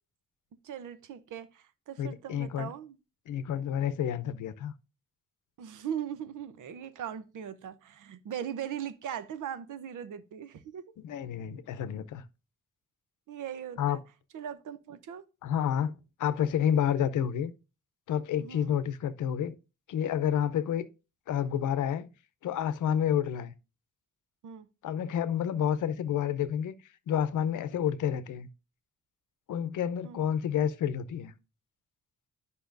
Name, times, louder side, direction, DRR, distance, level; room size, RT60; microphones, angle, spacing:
voice 1, 0.6-3.0 5.6-10.9 13.3-14.0 14.3-15.2 18.4-18.8 24.4-24.7 30.0-30.2, right 9 dB, 85° right, 0.8 m, -39 dB
voice 2, 2.0-2.7 3.3-4.7 11.0-12.2 13.8-14.0 15.4-17.5 18.1-19.6 19.9-20.9 21.3-22.1 22.4-23.5 24.8-26.7 27.1-28.5 29.5-31.3, left 9 dB, 80° left, 0.7 m, -29 dB
10.0 x 5.5 x 2.6 m
cardioid pair, 130°, 30 cm